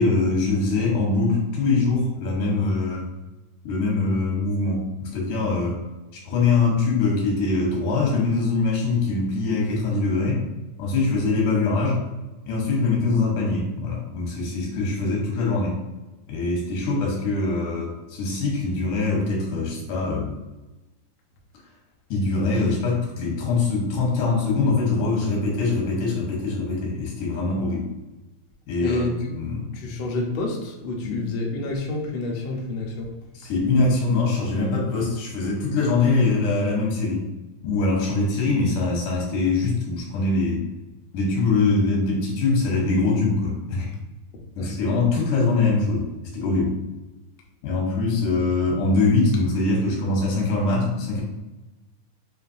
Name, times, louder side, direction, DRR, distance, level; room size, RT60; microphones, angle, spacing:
voice 1, 0.0-3.1 3.6-5.8 6.1-10.4 10.8-12.0 12.5-15.8 16.3-20.3 22.1-27.9 28.7-29.7 31.0-31.3 33.3-37.3 37.6-40.6 41.1-43.9 44.6-46.1 46.3-46.8 47.6-51.2, left 3 dB, 90° left, -1 dB, 2.6 m, -23 dB
voice 2, 28.8-29.3 29.7-33.1 44.6-45.0, left 2 dB, 70° left, -2 dB, 1.2 m, -29 dB
6.5 x 2.7 x 2.6 m, 1.1 s
omnidirectional pair, 3.4 m